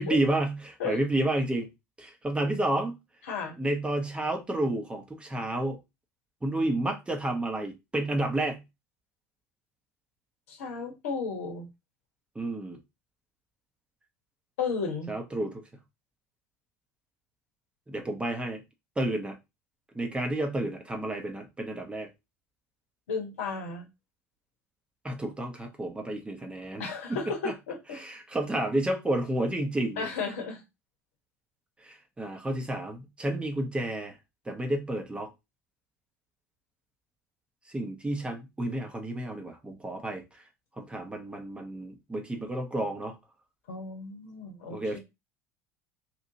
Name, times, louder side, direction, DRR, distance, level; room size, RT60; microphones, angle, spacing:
voice 1, 0.0-1.7 2.0-3.0 3.6-5.8 6.4-8.6 12.3-12.8 15.1-15.6 17.9-18.6 19.0-19.4 19.9-22.1 25.0-26.8 27.1-27.3 27.9-30.1 31.8-34.2 34.5-35.3 37.7-40.4 40.8-43.2 44.7-45.0, right 1 dB, 15° right, 0.8 m, -30 dB
voice 2, 10.5-11.7 14.6-15.1 23.1-23.9 26.8-28.0 30.0-30.6 43.7-45.0, left 4 dB, 70° left, 0.9 m, -34 dB
3.0 x 2.5 x 2.6 m
figure-of-eight pair, 65°, 8 cm